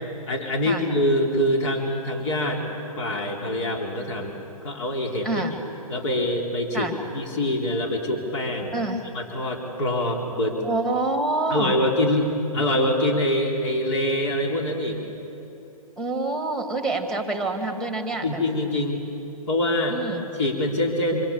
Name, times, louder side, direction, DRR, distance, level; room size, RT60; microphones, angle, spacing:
voice 1, 0.3-2.6 3.0-4.3 4.6-5.4 5.9-6.9 7.1-8.8 9.1-10.6 11.5-15.0 18.2-19.0 19.5-20.0 20.3-21.2, left 1 dB, 55° left, 1 dB, 4.1 m, -24 dB
voice 2, 5.2-5.6 6.7-7.0 8.7-9.0 10.6-11.7 16.0-18.4 19.9-20.2, right 2 dB, 5° left, 4 dB, 2.3 m, -27 dB
26.5 x 26.5 x 7.3 m, 2.9 s
hypercardioid pair, 140°, 19 cm